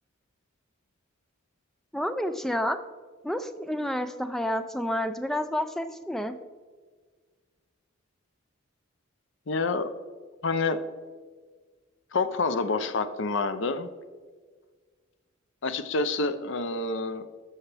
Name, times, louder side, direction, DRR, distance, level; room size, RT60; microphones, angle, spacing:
voice 1, 1.9-2.8 3.2-6.4, left 1 dB, ahead, 9 dB, 0.3 m, -29 dB
voice 2, 9.5-9.9 10.4-10.8 12.1-13.9 15.6-17.3, left 3 dB, 60° left, 11 dB, 0.6 m, -27 dB
13.0 x 5.6 x 3.4 m, 1.5 s
head